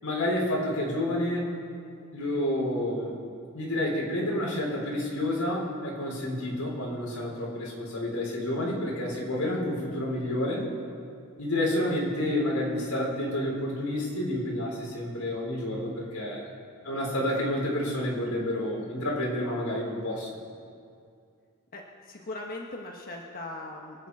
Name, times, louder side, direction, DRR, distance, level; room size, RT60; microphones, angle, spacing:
voice 1, 0.0-1.5 2.1-3.1 3.5-10.6 11.4-16.4 16.8-20.3, left 1 dB, 90° left, -3 dB, 4.3 m, -29 dB
voice 2, 21.7-24.1, left 2 dB, 40° left, 0 dB, 1.2 m, -39 dB
25.5 x 9.3 x 4.9 m, 2.3 s
head